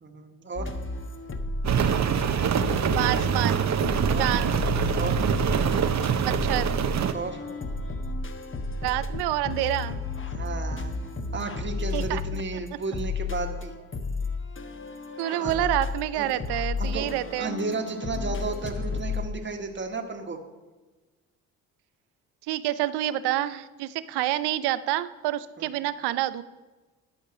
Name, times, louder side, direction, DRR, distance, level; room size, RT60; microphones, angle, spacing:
voice 1, 0.0-0.7 4.1-4.2 4.9-5.2 7.1-7.4 10.3-10.9 11.3-13.7 15.3-15.7 16.1-16.3 16.8-17.1 17.4-20.4 25.6-25.7, right 4 dB, 30° right, 4 dB, 1.5 m, -33 dB
sound 1, 0.6-2.3 2.6-19.3, left 3 dB, 30° left, 1.2 m, -32 dB
Rain, 1.6-7.1, right 7 dB, 45° right, 0.9 m, -25 dB
voice 2, 2.9-3.7 4.2-4.5 6.2-6.8 8.8-10.0 11.9-12.4 15.2-17.6 22.5-26.4, right 14 dB, 75° right, 15 dB, 0.7 m, -28 dB
11.5 x 5.3 x 6.4 m, 1.2 s
hypercardioid pair, 55°, 40 cm